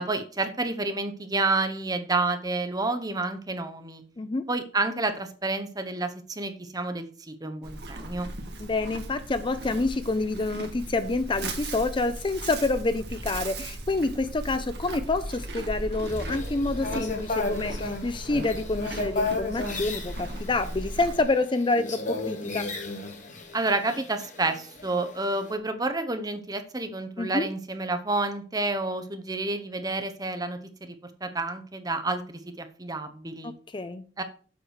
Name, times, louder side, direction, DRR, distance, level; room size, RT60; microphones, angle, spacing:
voice 1, 0.0-4.0 4.5-8.3 23.5-33.5 34.2-34.3, right 2 dB, 20° right, 8 dB, 1.0 m, -29 dB
Livestock farm animals working animals, 7.6-21.2, right 1 dB, 65° right, 1.7 m, -37 dB
voice 2, 8.6-22.7 27.2-27.5 33.4-34.0, left 2 dB, 25° left, 12 dB, 0.5 m, -28 dB
sound 1, 16.0-25.5, left 3 dB, 45° left, 1.7 m, -34 dB
7.9 x 4.9 x 6.4 m, 0.40 s
head